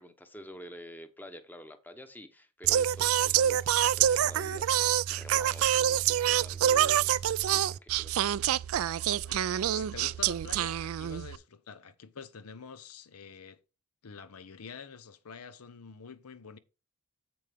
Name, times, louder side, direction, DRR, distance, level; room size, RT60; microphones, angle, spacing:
voice 1, 0.0-8.3, equal, 10° left, 0.9 m, -49 dB
Singing, 2.6-11.4, right 11 dB, 65° right, 0.3 m, -27 dB
voice 2, 9.2-13.6 14.0-16.6, left 6 dB, 90° left, 0.7 m, -47 dB
7.7 x 7.0 x 3.4 m
head